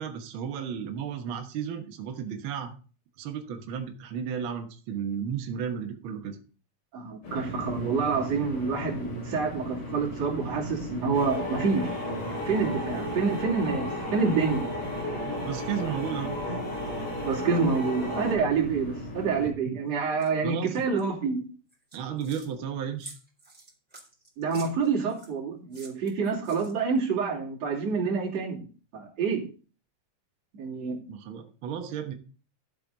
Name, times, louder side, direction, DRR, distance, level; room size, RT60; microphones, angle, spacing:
voice 1, 0.0-2.7 3.2-6.4 15.2-16.4 19.4-19.8 20.4-20.8 21.9-23.1 31.1-32.1, right 8 dB, 75° right, 4 dB, 1.1 m, -34 dB
voice 2, 6.9-12.0 12.5-14.7 17.2-21.4 24.4-28.6 28.9-29.4 30.5-31.0, right 5 dB, 50° right, -3 dB, 3.7 m, -27 dB
sound 1, 7.2-19.5, left 1 dB, 75° left, 6.8 m, -38 dB
sound 2, 11.1-18.4, left 1 dB, 50° left, 5.1 m, -34 dB
sound 3, 20.2-20.3 20.7-21.0 21.7-22.5 23.0-25.3 25.7-27.0, right 2 dB, 5° right, 3.5 m, -49 dB
13.0 x 8.1 x 3.9 m, 0.36 s
omnidirectional pair, 4.1 m